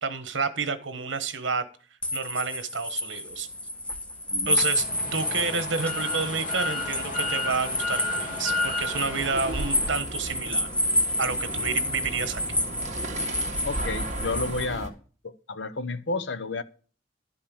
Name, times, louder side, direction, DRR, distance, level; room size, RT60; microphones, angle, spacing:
voice 1, 0.0-1.6 2.1-3.5 4.5-10.7 11.2-12.6, right 5 dB, 75° right, 1.2 m, -30 dB
sound 1, 2.0-14.7, left 1 dB, 5° left, 0.8 m, -30 dB
sound 2, 3.3-14.9, right 1 dB, 40° right, 1.7 m, -37 dB
sound 3, 4.7-10.0, left 2 dB, 45° left, 2.2 m, -32 dB
voice 2, 13.6-14.9 15.2-16.6, left 3 dB, 65° left, 0.8 m, -31 dB
11.5 x 5.5 x 6.9 m
head